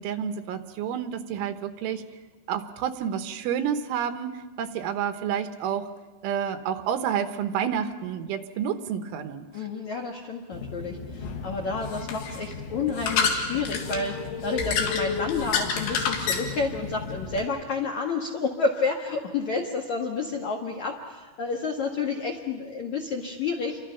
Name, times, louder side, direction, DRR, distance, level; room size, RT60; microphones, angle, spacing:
voice 1, 0.0-2.0 2.5-5.9 6.2-9.5, right 8 dB, 90° right, 8 dB, 3.6 m, -29 dB
voice 2, 9.5-23.8, left 4 dB, 65° left, 0 dB, 1.8 m, -30 dB
sound 1, 10.5-17.4, left 5 dB, 85° left, 4.4 m, -30 dB
29.0 x 24.0 x 5.8 m, 1.3 s
omnidirectional pair, 5.4 m